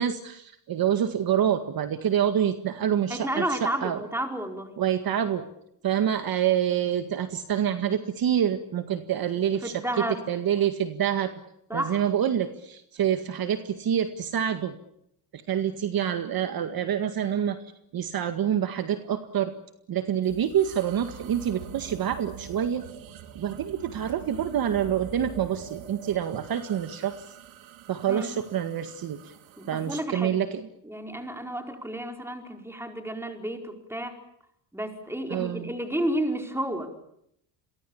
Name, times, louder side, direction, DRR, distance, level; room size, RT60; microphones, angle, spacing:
voice 1, 0.0-4.0 4.8-5.4 5.8-11.3 11.7-14.8 15.3-17.6 17.9-19.5 19.9-22.9 23.4-27.2 27.9-29.3 29.7-30.7 35.3-35.7, right 9 dB, 45° right, 9 dB, 2.0 m, -27 dB
voice 2, 3.1-4.7 9.6-10.2 11.7-12.0 28.1-28.4 29.6-30.4 30.9-34.2 34.7-36.9, right 1 dB, 5° right, 4 dB, 4.8 m, -31 dB
sound 1, 20.2-30.0, right 10 dB, 75° right, 3.1 m, -45 dB
30.0 x 23.5 x 7.2 m, 0.75 s
cardioid pair, 120°, 48 cm